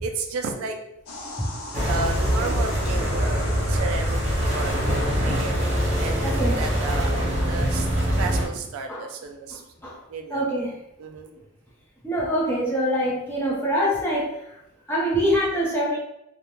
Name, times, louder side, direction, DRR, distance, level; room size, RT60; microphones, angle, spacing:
voice 1, 0.0-0.8 1.9-5.6 6.0-7.9 8.2-9.6 10.1-10.5 11.0-11.3, right 4 dB, 75° right, 4 dB, 0.3 m, -33 dB
sound 1, 1.1-8.0, left 1 dB, 85° left, 0.5 m, -39 dB
sound 2, 1.7-8.5, equal, 30° right, 0.7 m, -23 dB
voice 2, 6.2-6.6 7.6-7.7 8.9-9.1 9.8-10.0 10.3-10.7 12.0-14.4 14.9-16.0, equal, 10° left, -5 dB, 0.6 m, -24 dB
2.3 x 2.1 x 2.9 m, 0.83 s
head